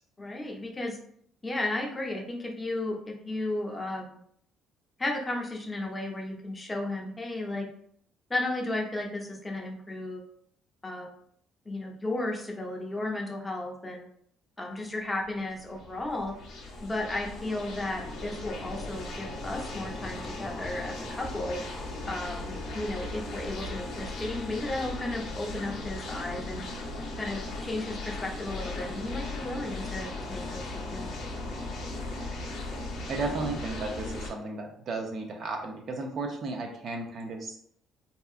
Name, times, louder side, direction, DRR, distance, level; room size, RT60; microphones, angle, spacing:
voice 1, 0.2-1.0 1.4-4.2 5.0-7.7 8.3-10.2 10.8-11.1 11.7-14.1 14.6-16.3 16.8-26.6 27.2-31.1, left 2 dB, 20° left, 1 dB, 0.6 m, -34 dB
sound 1, 15.2-34.3, left 2 dB, 75° left, 0.7 m, -37 dB
voice 2, 33.1-37.6, right 3 dB, 55° right, 3 dB, 0.5 m, -34 dB
2.7 x 2.3 x 2.4 m, 0.65 s
supercardioid pair, 80°, 0 cm